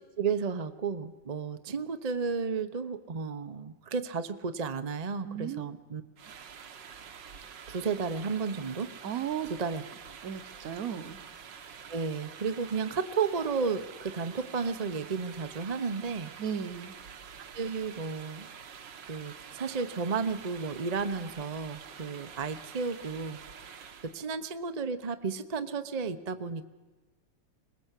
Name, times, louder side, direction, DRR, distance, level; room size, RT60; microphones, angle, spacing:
voice 1, 0.2-6.0 7.7-8.9 9.4-9.8 11.9-16.3 17.5-18.5 19.1-23.4 24.0-26.6, right 5 dB, 40° right, 10 dB, 0.6 m, -33 dB
voice 2, 5.2-5.7 9.0-9.5 10.2-11.2 16.4-16.9, right 9 dB, 55° right, 12 dB, 1.3 m, -35 dB
sound 1, 6.2-24.2, right 7 dB, 70° right, 1.9 m, -47 dB
21.5 x 20.5 x 8.3 m, 1.2 s
omnidirectional pair, 2.0 m